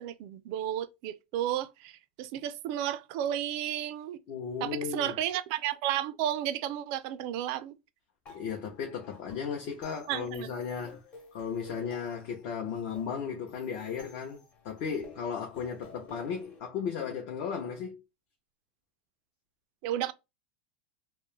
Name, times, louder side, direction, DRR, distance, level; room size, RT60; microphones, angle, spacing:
voice 1, 0.0-4.2 4.6-7.7 10.1-10.5 19.8-20.1, right 11 dB, 50° right, 0.3 m, -33 dB
voice 2, 4.3-5.2 8.3-11.0 11.3-18.0, left 6 dB, 50° left, 0.6 m, -35 dB
sound 1, 8.2-16.6, left 3 dB, 30° left, 0.9 m, -54 dB
2.3 x 2.0 x 3.0 m
supercardioid pair, 160°, 5 cm